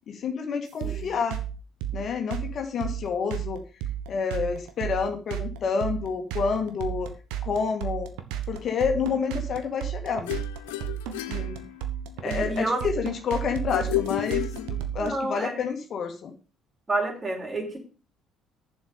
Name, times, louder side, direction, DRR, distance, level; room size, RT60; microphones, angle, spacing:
voice 1, 0.1-1.4 1.9-3.6 4.1-7.1 7.4-8.1 8.5-10.4 11.3-11.5 12.2-16.3, left 6 dB, 50° left, 5 dB, 1.8 m, -29 dB
sound 1, 0.8-15.1, right 11 dB, 70° right, 1.3 m, -32 dB
sound 2, 10.3-12.2 13.7-15.2, left 16 dB, 75° left, 0.7 m, -32 dB
voice 2, 11.3-11.6 12.2-12.8 15.0-15.6 16.9-17.8, right 2 dB, 25° right, 2 dB, 4.2 m, -30 dB
7.2 x 7.1 x 7.0 m, 0.34 s
hypercardioid pair, 55°, 0 cm